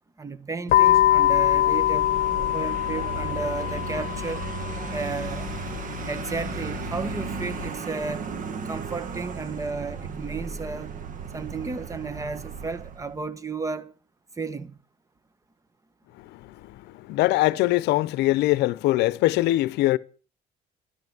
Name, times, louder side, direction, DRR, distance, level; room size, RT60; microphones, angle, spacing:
voice 1, 0.2-2.1 2.5-4.4 4.9-5.5 6.1-8.3 8.6-10.9 11.3-13.9 14.4-14.8, right 4 dB, 20° right, 1.2 m, -33 dB
sound 1, 0.7-7.7, left 13 dB, 60° left, 1.0 m, -24 dB
Vehicle, 0.9-13.2, right 6 dB, 50° right, 1.5 m, -36 dB
voice 2, 17.0-20.0, left 17 dB, 85° left, 0.7 m, -22 dB
13.0 x 12.0 x 6.0 m
cardioid pair, 110°, 17 cm